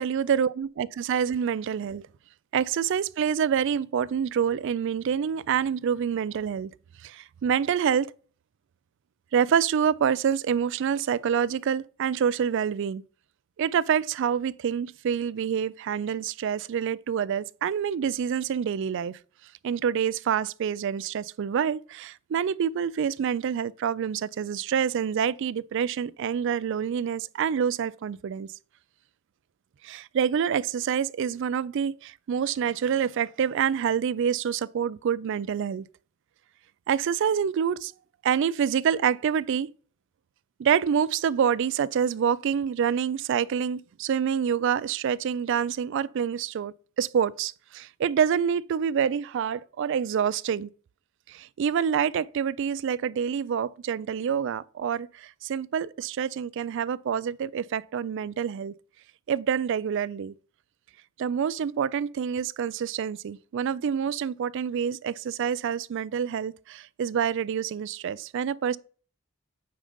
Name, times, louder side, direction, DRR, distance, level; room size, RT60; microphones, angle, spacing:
voice 1, 0.0-2.0 2.5-6.7 7.0-8.1 9.3-13.0 13.6-19.2 19.6-28.5 29.8-35.9 36.9-37.9 38.2-39.7 40.6-50.7 51.3-58.7 59.3-60.3 61.2-68.8, right 7 dB, 60° right, 0.3 m, -27 dB
8.6 x 3.9 x 5.1 m
head